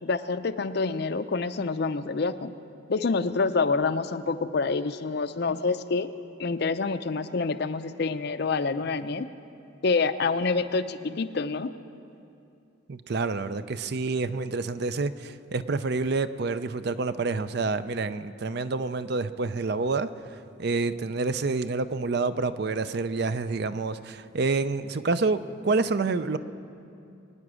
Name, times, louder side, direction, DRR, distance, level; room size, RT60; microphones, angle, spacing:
voice 1, 0.0-2.5 2.9-6.1 6.4-9.3 9.8-11.7, left 4 dB, 50° left, 11 dB, 0.5 m, -27 dB
voice 2, 12.9-26.4, right 3 dB, 50° right, 13 dB, 0.5 m, -28 dB
23.5 x 9.6 x 6.2 m, 2.6 s
head